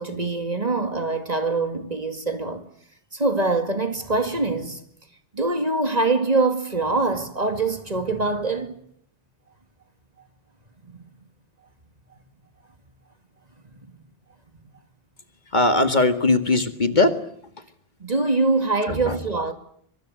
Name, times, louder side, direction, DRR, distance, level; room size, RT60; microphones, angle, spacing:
voice 1, 0.0-2.7 3.1-4.8 5.3-8.8 10.8-11.0 18.0-19.5, right 3 dB, 35° right, 2.2 m, -24 dB
voice 2, 15.5-17.2 17.6-17.7 18.9-19.2, left 2 dB, 45° left, 2.1 m, -20 dB
24.0 x 23.5 x 9.0 m
omnidirectional pair, 1.1 m